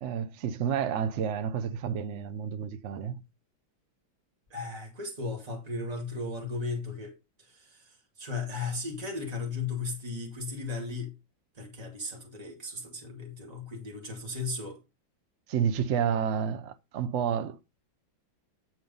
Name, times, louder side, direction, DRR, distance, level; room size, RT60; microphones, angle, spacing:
voice 1, 0.0-3.2 15.5-17.6, right 8 dB, 85° right, 0.6 m, -30 dB
voice 2, 4.5-7.1 7.4-11.1 11.5-14.8, left 3 dB, 20° right, 2.4 m, -36 dB
9.5 x 4.5 x 5.4 m
omnidirectional pair, 2.2 m